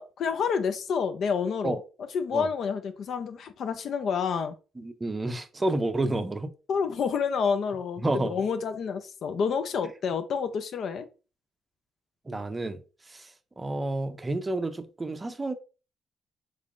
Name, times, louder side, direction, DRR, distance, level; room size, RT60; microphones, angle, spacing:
voice 1, 0.0-1.8 2.1-4.5 6.7-11.1, left 6 dB, 65° left, 0.5 m, -29 dB
voice 2, 4.8-6.5 8.0-8.3 12.3-12.8 13.1-15.5, right 2 dB, 20° right, 0.5 m, -30 dB
3.5 x 3.3 x 2.4 m
cardioid pair, 90°, 0 cm